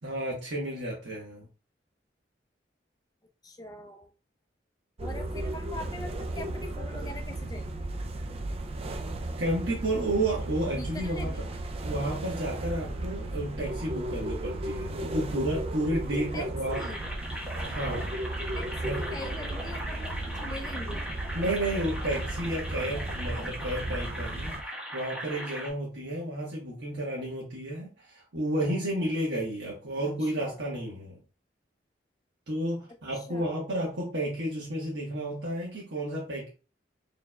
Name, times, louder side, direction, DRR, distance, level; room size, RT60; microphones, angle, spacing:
voice 1, 0.0-1.5 9.4-11.5 11.8-16.9 17.6-18.2 18.8-19.0 21.3-31.2 32.5-36.5, right 1 dB, 80° right, -5 dB, 1.3 m, -32 dB
voice 2, 3.4-4.1 5.0-7.8 10.8-11.5 16.3-17.0 18.5-21.1 30.0-30.6 33.1-33.6, left 1 dB, 20° left, 5 dB, 0.5 m, -42 dB
sound 1, 5.0-24.6, right 1 dB, 35° right, 0.3 m, -35 dB
sound 2, 16.7-25.7, equal, 5° right, 1.2 m, -39 dB
4.5 x 3.2 x 2.2 m, 0.35 s
head